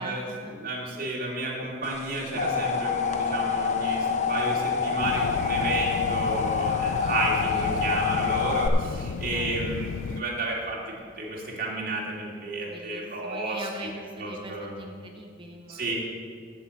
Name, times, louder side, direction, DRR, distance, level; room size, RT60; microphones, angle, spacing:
voice 1, 0.0-0.5 5.2-5.3 6.9-7.7 9.1-9.6 12.6-15.9, right 2 dB, 30° right, 1 dB, 1.0 m, -42 dB
voice 2, 0.5-13.7 14.2-14.8 15.7-15.9, right 2 dB, 50° right, -4 dB, 2.6 m, -31 dB
sound 1, 2.0-8.7, left 6 dB, 40° left, 0.7 m, -27 dB
sound 2, 5.0-10.2, left 6 dB, 85° left, 0.3 m, -34 dB
8.4 x 7.9 x 7.0 m, 2.1 s
head